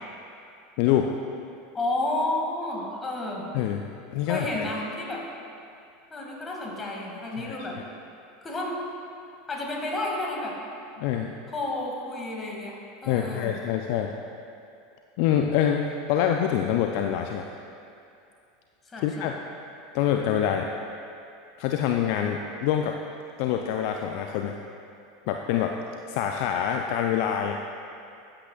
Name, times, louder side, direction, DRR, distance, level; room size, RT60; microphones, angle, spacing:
voice 1, 0.8-1.1 3.5-3.8 4.1-4.6 7.4-7.6 11.0-11.4 13.1-14.1 15.2-17.5 19.0-19.4 19.9-20.7 21.6-22.9 23.4-24.6 25.3-25.8 26.1-27.6, left 9 dB, 60° left, 3 dB, 0.4 m, -25 dB
voice 2, 1.7-3.5 4.2-5.2 6.1-7.8 8.4-8.8 9.5-10.5 11.5-12.8 13.0-13.5 18.9-19.3, left 2 dB, 20° left, -2 dB, 2.1 m, -31 dB
13.5 x 8.6 x 2.4 m, 2.5 s
hypercardioid pair, 85°, 0 cm